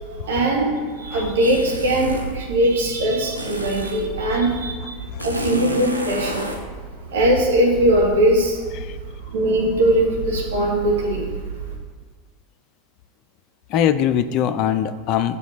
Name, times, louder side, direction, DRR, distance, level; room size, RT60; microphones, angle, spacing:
voice 1, 0.2-0.7 1.0-4.9 5.2-6.5 7.1-8.6 9.3-11.3, right 1 dB, 65° right, -2 dB, 1.8 m, -20 dB
sound 1, 1.4-2.4 3.4-4.1 5.2-6.6, right 1 dB, 90° right, 0.7 m, -30 dB
voice 2, 5.1-5.5 8.7-8.9 13.7-15.4, left 9 dB, 45° left, 11 dB, 0.5 m, -22 dB
6.8 x 5.1 x 6.6 m, 1.5 s
figure-of-eight pair, 85°, 0 cm